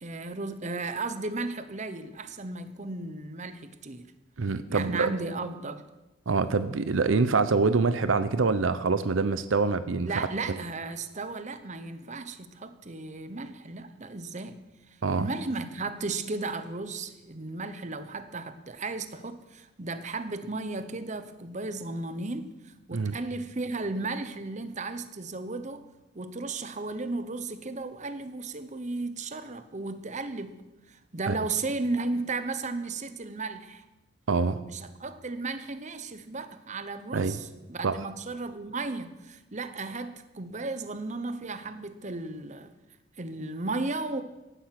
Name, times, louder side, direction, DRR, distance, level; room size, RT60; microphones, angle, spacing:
voice 1, 0.0-4.1 4.7-5.8 10.0-14.6 14.9-25.9 26.1-30.6 30.9-33.8 34.6-42.7 43.2-44.2, right 3 dB, 35° right, 11 dB, 0.9 m, -35 dB
voice 2, 4.4-5.1 6.3-10.3 15.0-15.3 22.9-23.1 31.3-31.4 34.3-34.6 37.1-37.4 37.8-38.0, right 4 dB, 75° right, 12 dB, 0.7 m, -25 dB
15.0 x 12.0 x 5.9 m, 1.1 s
head